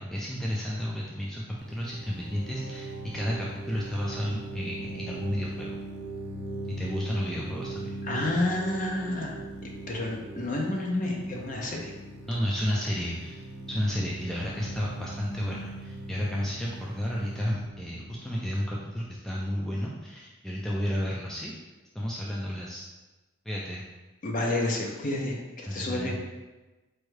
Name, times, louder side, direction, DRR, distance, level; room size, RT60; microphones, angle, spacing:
voice 1, 0.0-5.8 6.8-7.9 12.3-21.5 21.9-22.8 23.5-23.8 25.7-26.2, equal, ahead, -4 dB, 0.3 m, -32 dB
sound 1, 1.6-19.2, right 2 dB, 65° right, 0.7 m, -40 dB
voice 2, 8.0-9.4 9.9-11.9 24.2-26.2, left 2 dB, 40° left, 0 dB, 0.6 m, -30 dB
4.6 x 2.6 x 3.2 m, 1.2 s
head